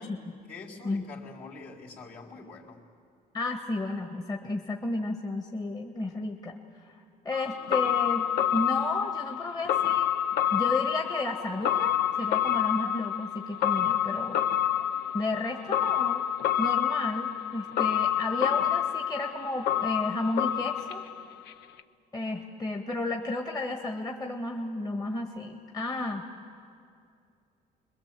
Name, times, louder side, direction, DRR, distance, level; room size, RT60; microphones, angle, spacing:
voice 1, 0.5-2.8, left 4 dB, 60° left, -3 dB, 3.9 m, -45 dB
voice 2, 3.3-7.0 7.2-10.1 10.5-14.5 15.1-16.2 16.6-21.0 22.1-26.2, left 2 dB, 25° left, 2 dB, 1.6 m, -33 dB
sound 1, 7.3-21.5 21.8-21.9, left 10 dB, 75° left, 0.8 m, -28 dB
26.5 x 21.5 x 7.6 m, 2.4 s
cardioid pair, 110°, 17 cm